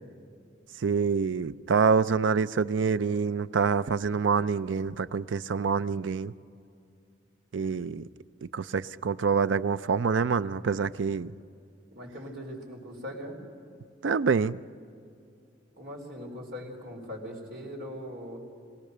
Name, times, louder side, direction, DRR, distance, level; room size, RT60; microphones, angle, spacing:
voice 1, 0.8-6.3 7.5-8.0 8.5-11.3 14.0-14.6, right 5 dB, 85° right, 15 dB, 0.5 m, -26 dB
voice 2, 11.9-13.4 15.8-18.4, equal, 60° right, -1 dB, 4.4 m, -40 dB
23.0 x 17.5 x 6.7 m, 2.4 s
head